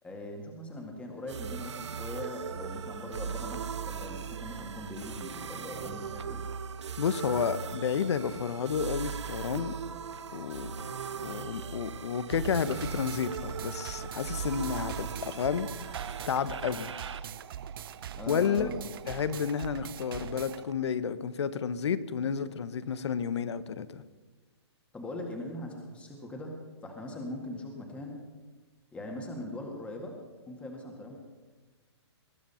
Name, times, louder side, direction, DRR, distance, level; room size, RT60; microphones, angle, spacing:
voice 1, 0.0-6.4 18.2-18.8 24.9-26.5 26.8-28.2 28.9-30.2 30.5-31.2, left 1 dB, 10° left, 1 dB, 1.9 m, -40 dB
sound 1, 1.3-20.7, right 7 dB, 90° right, 0.9 m, -39 dB
voice 2, 7.0-9.8 10.3-10.9 11.2-15.7 16.3-16.9 18.3-18.7 19.1-24.0, left 7 dB, 75° left, 15 dB, 1.1 m, -31 dB
sound 2, 12.3-20.6, right 9 dB, 55° right, 0.6 m, -42 dB
20.5 x 10.5 x 5.7 m, 1.3 s
hypercardioid pair, 150°, 14 cm